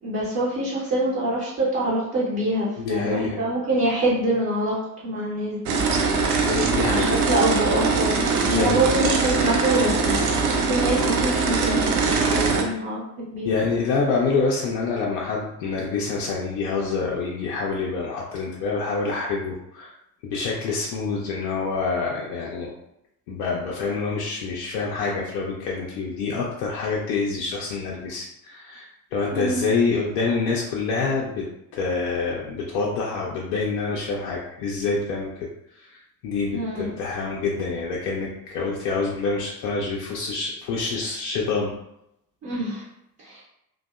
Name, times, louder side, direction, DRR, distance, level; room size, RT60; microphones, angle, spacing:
voice 1, 0.0-4.8 5.0-5.8 6.9-10.3 10.7-11.9 12.2-13.0 13.3-13.5 29.3-29.7 36.5-36.9 42.4-42.8 43.2-43.4, right 1 dB, 25° right, -7 dB, 0.7 m, -25 dB
voice 2, 2.8-3.4 6.4-7.2 8.5-8.9 13.4-19.9 20.2-22.7 23.3-31.5 31.7-35.3 35.9-36.0 36.2-41.7, left 4 dB, 45° left, -3 dB, 0.5 m, -26 dB
sound 1, 5.7-12.6, right 4 dB, 60° right, 0.6 m, -22 dB
2.6 x 2.2 x 2.3 m, 0.81 s
figure-of-eight pair, 70°, 50 cm